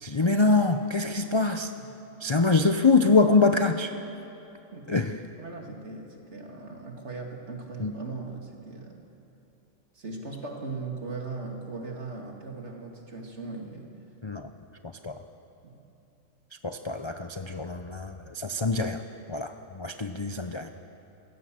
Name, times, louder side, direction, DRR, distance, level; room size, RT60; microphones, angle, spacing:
voice 1, 0.0-1.7 2.2-3.9 4.9-5.2 7.8-8.0 14.2-14.5 15.0-15.2 16.6-19.0 19.3-20.7, left 3 dB, 30° left, 6 dB, 0.5 m, -24 dB
voice 2, 5.4-9.0 9.9-13.9 15.6-15.8, right 3 dB, 55° right, 1 dB, 2.6 m, -38 dB
27.0 x 16.0 x 7.6 m, 2.9 s
omnidirectional pair, 1.4 m